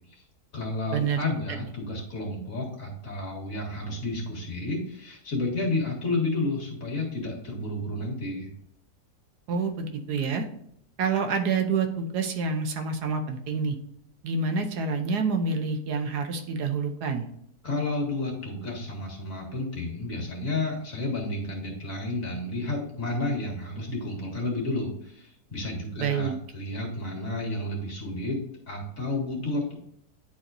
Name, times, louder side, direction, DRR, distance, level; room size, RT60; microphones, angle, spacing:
voice 1, 0.5-8.5 17.6-29.7, left 2 dB, 55° left, -1 dB, 2.2 m, -31 dB
voice 2, 9.5-10.5 11.0-13.8 14.2-17.3 26.0-26.3, right 5 dB, 80° right, 6 dB, 1.4 m, -27 dB
9.8 x 4.2 x 2.5 m, 0.72 s
omnidirectional pair, 1.7 m